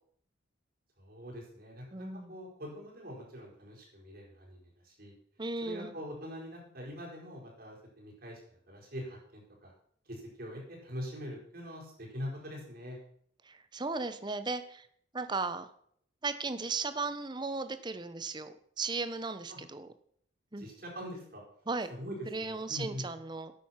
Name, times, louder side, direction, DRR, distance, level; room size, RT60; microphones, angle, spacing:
voice 1, 1.0-5.1 5.6-8.4 8.7-9.7 10.0-13.0 19.5-19.6 20.6-21.4 21.9-23.0, equal, 50° right, -1 dB, 4.7 m, -43 dB
voice 2, 1.9-2.3 5.4-5.9 13.4-14.9 15.1-15.7 16.2-19.9 20.5-20.6 21.7-21.9 22.3-23.5, right 3 dB, 25° right, 11 dB, 0.8 m, -36 dB
12.0 x 9.4 x 5.8 m, 0.65 s
head